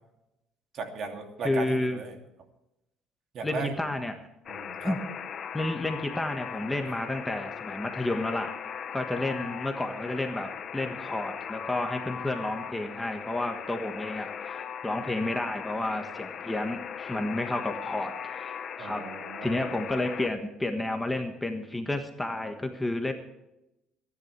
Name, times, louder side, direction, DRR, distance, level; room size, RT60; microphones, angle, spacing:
voice 1, 0.7-2.2 3.3-3.7 4.5-4.9 18.8-19.8, right 4 dB, 50° right, 4 dB, 2.7 m, -36 dB
voice 2, 1.4-2.0 3.4-4.1 4.8-5.0 5.5-8.5 8.9-19.1 19.4-23.1, left 2 dB, 10° left, 5 dB, 1.5 m, -31 dB
Alarm, 4.5-20.3, left 8 dB, 45° left, 1.0 m, -39 dB
25.5 x 11.0 x 3.4 m, 0.89 s
cardioid pair, 125°, 0 cm